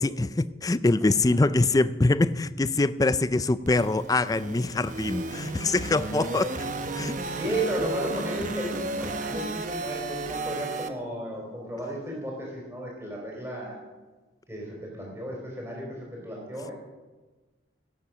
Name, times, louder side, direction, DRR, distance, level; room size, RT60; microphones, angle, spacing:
voice 1, 0.0-6.7 6.9-7.2, left 2 dB, 20° left, 0.4 m, -24 dB
sound 1, 3.7-10.9, right 2 dB, 45° right, 1.0 m, -33 dB
voice 2, 7.3-13.8 14.5-16.7, right 1 dB, 15° right, 3.9 m, -34 dB
16.5 x 8.6 x 6.2 m
head